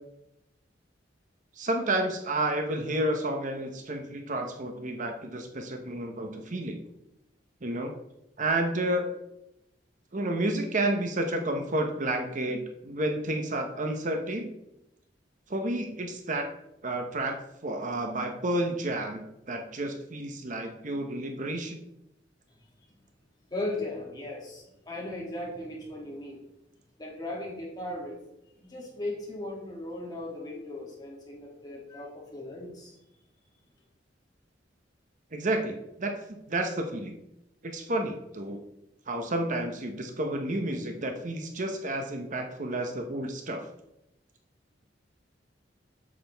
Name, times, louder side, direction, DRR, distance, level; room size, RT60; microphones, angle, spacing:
voice 1, 1.6-6.8 7.6-7.9 8.4-9.0 10.1-14.5 15.5-16.5 16.8-17.4 17.6-21.8 35.3-37.2 37.6-38.6 39.1-43.6, right 1 dB, 45° right, 4 dB, 0.9 m, -30 dB
voice 2, 23.5-26.4 27.0-28.2 28.6-33.0, left 1 dB, 25° left, -3 dB, 2.5 m, -37 dB
8.7 x 7.5 x 3.4 m, 0.86 s
head